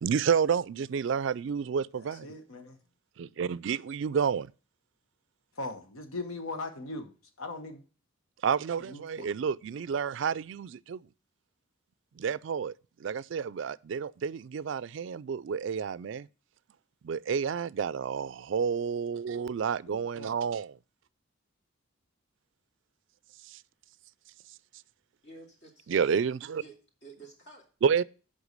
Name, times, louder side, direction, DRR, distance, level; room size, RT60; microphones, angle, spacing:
voice 1, 0.0-2.3 3.2-4.5 8.4-11.0 12.2-16.3 17.0-20.8 23.4-23.6 25.9-26.6 27.8-28.0, right 6 dB, 60° right, 0.3 m, -30 dB
voice 2, 2.2-2.8 5.6-7.8 8.9-9.3 19.9-20.3, left 2 dB, 85° left, 1.2 m, -39 dB
voice 3, 25.2-25.9 26.5-27.7, right 3 dB, 55° left, 2.7 m, -51 dB
8.1 x 5.6 x 6.5 m
head